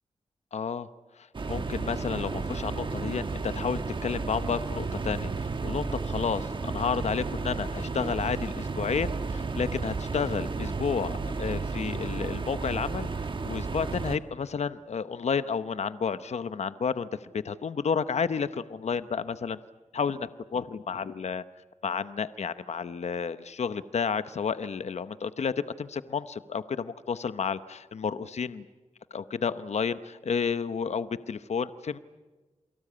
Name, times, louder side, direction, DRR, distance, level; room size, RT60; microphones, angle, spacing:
voice 1, 0.5-0.9 1.2-19.6 19.9-21.4 21.8-28.6 29.1-32.0, left 6 dB, 65° left, 13 dB, 0.9 m, -31 dB
sound 1, 1.3-14.2, right 4 dB, 40° right, 1.4 m, -33 dB
28.5 x 23.5 x 8.7 m, 1.2 s
wide cardioid pair, 175°, 12 cm